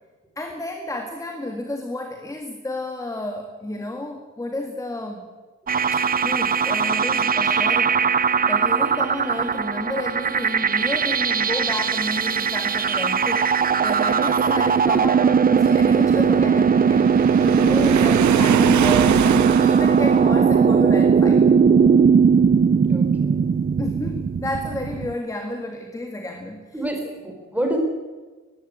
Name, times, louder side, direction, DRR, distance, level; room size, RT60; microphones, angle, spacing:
voice 1, 0.4-5.2 5.9-21.4 23.8-26.7, left 1 dB, 10° left, 4 dB, 1.8 m, -31 dB
sound 1, 5.7-25.1, right 6 dB, 30° right, 0.6 m, -19 dB
Waves surf, 16.9-20.4, right 11 dB, 65° right, 0.7 m, -25 dB
voice 2, 22.9-23.4 26.7-27.8, right 1 dB, 5° right, 2 dB, 4.4 m, -29 dB
20.0 x 15.5 x 8.8 m, 1.3 s
wide cardioid pair, 170°, 31 cm